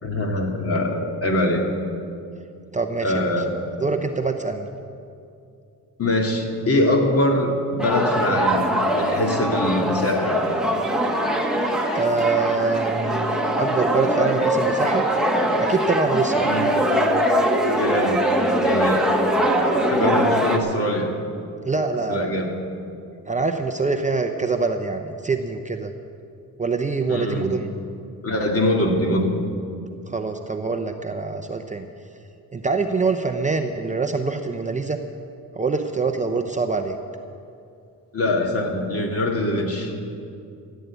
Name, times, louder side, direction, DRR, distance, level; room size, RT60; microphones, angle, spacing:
voice 1, 0.0-1.6 3.0-3.5 6.0-10.5 16.5-16.7 17.7-18.2 18.6-19.1 19.7-21.1 22.1-22.5 27.1-27.5 28.2-29.3 38.1-40.0, left 1 dB, 40° left, 2 dB, 2.3 m, -23 dB
voice 2, 2.7-3.3 3.8-4.7 11.9-15.0 15.6-16.5 20.0-20.1 21.6-22.3 23.3-25.9 26.6-27.7 30.1-31.9 32.5-35.0 35.6-37.0, right 4 dB, 20° right, 5 dB, 0.7 m, -24 dB
sound 1, 7.8-20.6, right 1 dB, ahead, 1.3 m, -22 dB
15.0 x 9.3 x 8.2 m, 2.5 s
cardioid pair, 120°, 36 cm